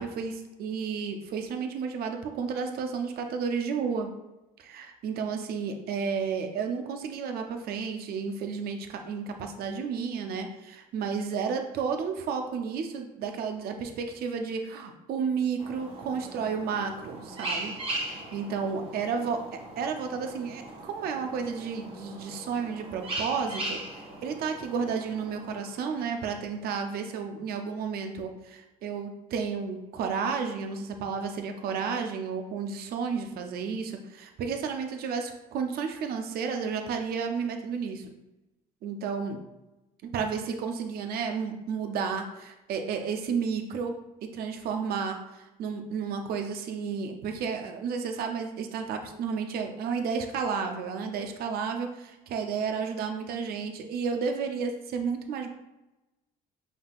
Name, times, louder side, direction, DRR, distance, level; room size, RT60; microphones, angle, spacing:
voice 1, 0.0-4.1 4.6-17.7 18.1-38.1 38.8-39.4 40.0-43.9 44.3-55.5, right 6 dB, 65° right, 5 dB, 0.6 m, -32 dB
sound 1, 15.6-26.5, right 1 dB, 35° right, 1.3 m, -39 dB
5.5 x 3.6 x 2.4 m, 0.99 s
cardioid pair, 110°, 17 cm